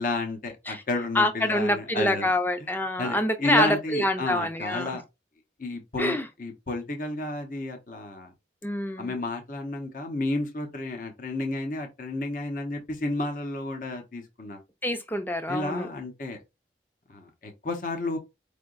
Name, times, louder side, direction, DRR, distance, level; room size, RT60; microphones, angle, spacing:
voice 1, 0.0-2.3 2.6-2.7 3.0-5.0 5.6-8.3 9.0-14.6 15.5-16.4 17.1-18.2, left 2 dB, 50° left, 0.9 m, -32 dB
voice 2, 1.1-4.9 6.0-6.3 8.6-9.2 14.8-15.9, left 1 dB, 10° left, 0.6 m, -26 dB
4.7 x 3.4 x 2.5 m
head